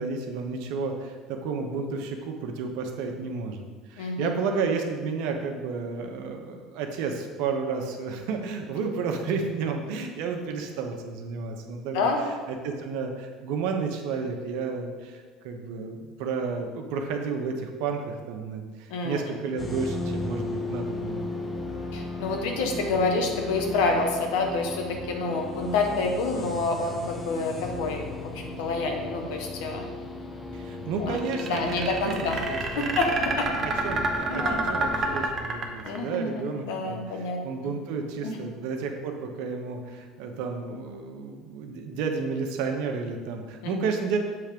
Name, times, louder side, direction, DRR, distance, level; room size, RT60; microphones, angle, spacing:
voice 1, 0.0-3.6 3.9-12.0 12.5-21.2 30.5-32.9 33.5-44.2, right 5 dB, 75° right, 4 dB, 0.9 m, -32 dB
voice 2, 4.0-4.3 11.9-12.2 18.9-19.2 21.9-28.3 28.6-29.9 31.0-31.2 31.5-32.4 32.8-33.5 34.3-34.6 35.8-37.7 38.2-38.4 43.6-43.7, left 3 dB, 80° left, 2 dB, 1.1 m, -28 dB
sound 1, 19.6-35.2, left 2 dB, 15° left, 0.8 m, -35 dB
sound 2, 31.2-36.2, right 3 dB, 40° right, 0.9 m, -28 dB
7.0 x 3.4 x 5.1 m, 1.5 s
supercardioid pair, 100°, 0 cm